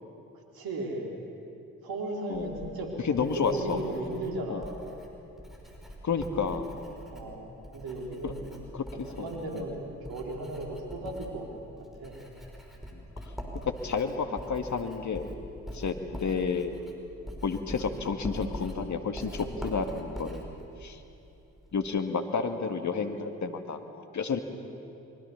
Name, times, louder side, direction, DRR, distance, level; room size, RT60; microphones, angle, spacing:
voice 1, 0.5-1.1 1.8-2.9 3.3-4.8 7.1-8.6 9.2-11.5 11.8-12.2 15.8-16.0, right 2 dB, 65° right, 1 dB, 4.5 m, -36 dB
Writing, 2.3-21.9, equal, ahead, 5.9 m, -44 dB
voice 2, 3.0-3.8 4.5-4.6 6.0-6.7 8.2-8.3 8.7-9.3 9.5-9.6 12.9-13.3 13.6-15.3 15.7-16.8 17.4-20.4 20.8-21.0 21.7-23.8 24.1-24.4, left 5 dB, 45° left, 7 dB, 2.1 m, -31 dB
25.0 x 24.0 x 7.2 m, 2.8 s
hypercardioid pair, 40°, 39 cm